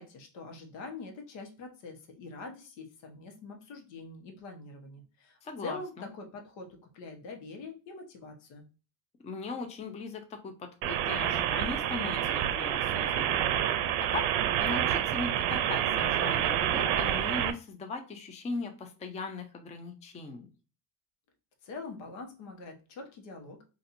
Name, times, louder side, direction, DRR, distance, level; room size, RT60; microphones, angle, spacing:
voice 1, 0.0-8.7 21.6-23.6, left 3 dB, 90° left, 3 dB, 1.1 m, -44 dB
voice 2, 5.4-6.1 9.2-13.5 14.0-14.2 14.6-20.5, left 3 dB, 15° left, 6 dB, 0.4 m, -39 dB
sound 1, 10.8-17.5, right 10 dB, 70° right, 0.6 m, -28 dB
4.1 x 2.6 x 2.5 m, 0.35 s
cardioid pair, 145°, 44 cm